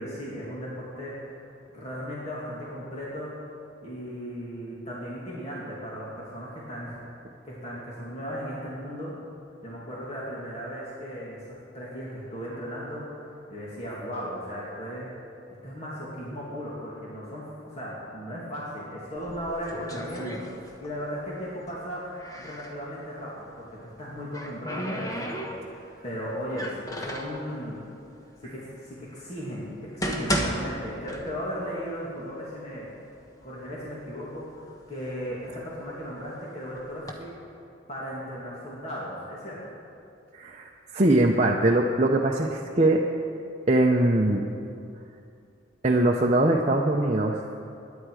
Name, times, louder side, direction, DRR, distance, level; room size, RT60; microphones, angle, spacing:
voice 1, 0.0-1.3 1.7-3.3 3.8-7.0 7.4-9.1 9.6-15.1 15.6-22.1 22.4-27.8 28.4-32.9 33.4-37.3 37.9-39.6, equal, 35° left, -7 dB, 2.5 m, -36 dB
sound 1, 19.2-21.1 21.3-22.8 23.9-25.9 26.5-27.4 28.2-28.3 28.9-29.0 29.7-31.7 32.0-32.1 32.8-32.9 33.3-33.9 34.5-36.1 36.8-37.1, equal, 15° left, 1.2 m, -34 dB
voice 2, 40.3-43.0 43.7-44.5 45.8-47.5, right 1 dB, 35° right, -1 dB, 0.7 m, -22 dB
21.5 x 10.5 x 4.9 m, 2.6 s
head